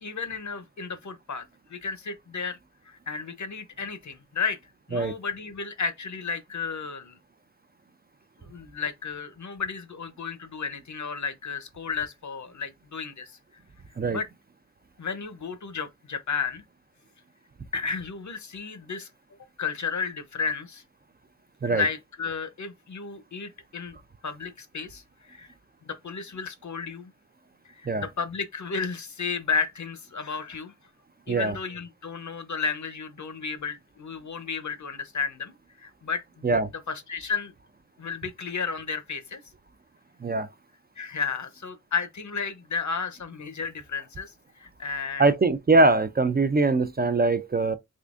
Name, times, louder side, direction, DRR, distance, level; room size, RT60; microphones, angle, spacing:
voice 1, 0.0-2.6 2.8-7.2 8.4-13.4 14.1-14.3 15.0-16.6 17.7-19.1 19.6-20.8 21.6-24.0 24.2-25.5 25.8-27.1 27.6-30.7 31.3-36.5 36.9-37.5 38.0-39.4 41.0-45.3, left 5 dB, 65° left, 0.7 m, -33 dB
voice 2, 45.2-47.8, right 3 dB, 30° right, 0.4 m, -22 dB
3.7 x 3.3 x 2.4 m
wide cardioid pair, 60°, 32 cm